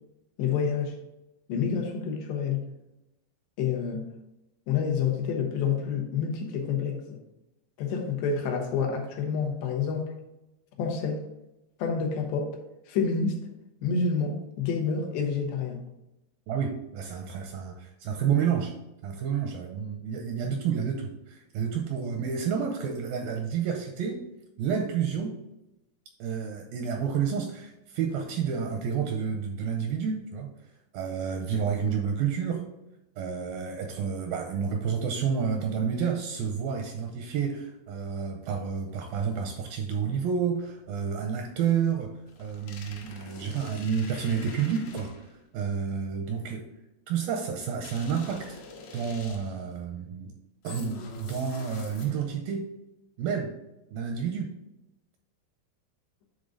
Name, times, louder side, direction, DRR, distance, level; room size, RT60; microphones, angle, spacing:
voice 1, 0.4-1.0 1.5-2.6 3.6-4.1 4.7-7.2 7.8-10.2 10.8-11.2 11.8-12.6 12.9-13.4 13.8-15.8, left 6 dB, 90° left, 1 dB, 3.3 m, -28 dB
voice 2, 16.5-18.7 19.0-24.2 24.6-25.4 26.2-30.5 30.9-32.6 33.2-42.1 42.4-45.1 45.5-46.6 47.1-48.6 48.9-50.3 50.6-52.7 53.2-53.5 53.9-54.5, right 7 dB, 85° right, 3 dB, 2.1 m, -30 dB
sound 1, 42.3-45.4 47.8-49.7 50.7-52.4, left 3 dB, 75° left, 2.7 m, -45 dB
9.5 x 3.8 x 3.8 m, 0.92 s
omnidirectional pair, 4.7 m